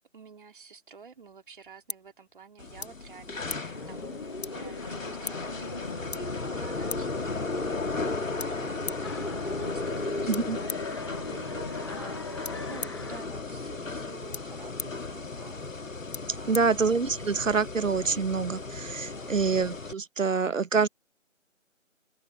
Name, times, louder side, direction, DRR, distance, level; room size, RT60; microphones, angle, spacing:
voice 1, 0.0-10.9 11.3-12.4 12.7-15.6 16.4-16.8 19.1-19.5, right 5 dB, 40° right, 3.0 m, -50 dB
sound 1, 1.1-17.4, left 4 dB, 55° left, 1.3 m, -45 dB
sound 2, 2.6-19.9, left 3 dB, 80° left, 1.5 m, -35 dB
sound 3, 3.5-13.2, left 3 dB, 20° left, 0.9 m, -41 dB
voice 2, 16.5-20.9, right 5 dB, 75° right, 1.0 m, -26 dB
open air
figure-of-eight pair, 160°, 39 cm